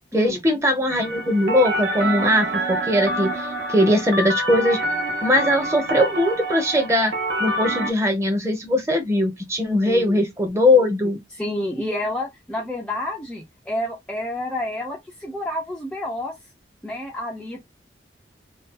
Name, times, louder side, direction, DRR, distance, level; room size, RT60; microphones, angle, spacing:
voice 1, 0.1-4.8 5.2-7.1 7.4-11.2, left 1 dB, 15° right, 0.7 m, -20 dB
sound 1, 0.9-7.9, right 1 dB, 75° right, 0.8 m, -27 dB
voice 2, 9.9-10.2 11.3-16.4 16.8-17.6, left 1 dB, 5° left, 0.4 m, -29 dB
2.7 x 2.2 x 3.5 m
head